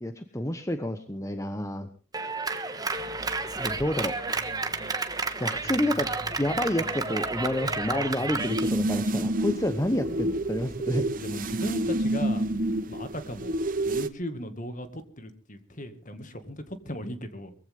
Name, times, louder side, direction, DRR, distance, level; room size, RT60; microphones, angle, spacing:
voice 1, 0.0-1.9 3.6-4.1 5.4-6.1 6.4-11.0, left 1 dB, 15° left, 8 dB, 1.0 m, -29 dB
Clapping, 2.1-8.7, right 3 dB, 15° right, 1.3 m, -31 dB
sound 1, 2.9-12.5, left 1 dB, 60° left, 2.0 m, -47 dB
sound 2, 8.4-14.1, right 1 dB, 40° right, 0.9 m, -28 dB
voice 2, 11.2-12.4 12.9-13.6 13.8-17.5, left 1 dB, 35° left, 9 dB, 2.0 m, -37 dB
21.5 x 15.5 x 3.6 m, 0.36 s
head